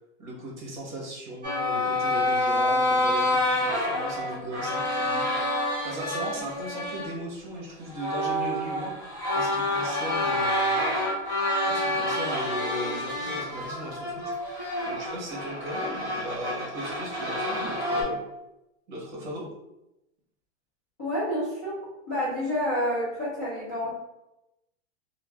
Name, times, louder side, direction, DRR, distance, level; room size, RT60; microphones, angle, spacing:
voice 1, 0.2-5.5 5.8-10.8 11.7-14.1 14.5-18.2 18.9-19.5, right 1 dB, 40° right, -3 dB, 1.0 m, -37 dB
sound 1, 1.4-7.1 7.5-7.6 7.9-18.0, left 1 dB, 15° right, 1.1 m, -28 dB
voice 2, 21.0-21.8 22.1-23.9, equal, 15° left, -13 dB, 0.4 m, -28 dB
2.5 x 2.1 x 3.4 m, 0.91 s
supercardioid pair, 180°, 35 cm